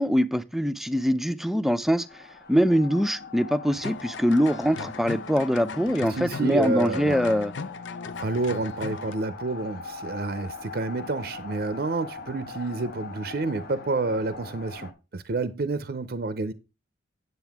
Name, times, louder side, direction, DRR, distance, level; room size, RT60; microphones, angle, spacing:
voice 1, 0.0-2.2 2.5-7.5, equal, ahead, 0.4 m, -23 dB
sound 1, 1.9-14.9, left 3 dB, 55° left, 1.2 m, -42 dB
sound 2, 3.7-9.1, left 5 dB, 85° left, 0.6 m, -37 dB
voice 2, 6.1-7.3 8.2-16.5, right 3 dB, 55° right, 0.5 m, -29 dB
9.1 x 7.9 x 3.5 m
head